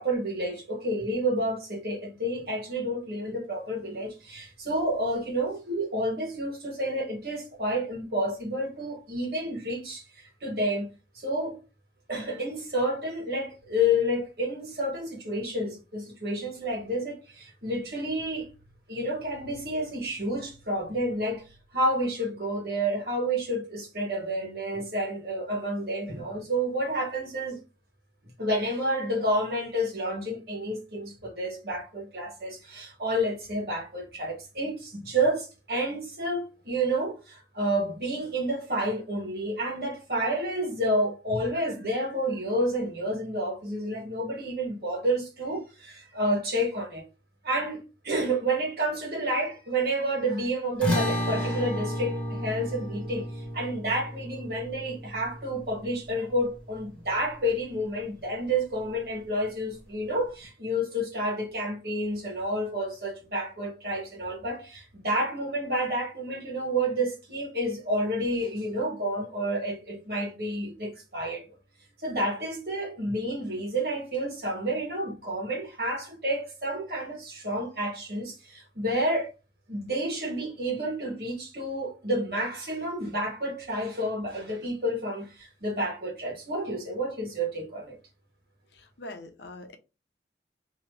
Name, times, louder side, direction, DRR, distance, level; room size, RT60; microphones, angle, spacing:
voice 1, 0.0-11.6 12.1-18.5 18.9-21.5 21.7-27.6 28.4-47.0 47.4-71.5 72.0-79.3 79.7-88.0, right 1 dB, 60° right, 1.4 m, -30 dB
sound 1, 50.8-57.3, equal, 10° left, 1.5 m, -32 dB
voice 2, 88.7-89.8, left 2 dB, 75° left, 0.7 m, -43 dB
2.9 x 2.9 x 3.3 m
head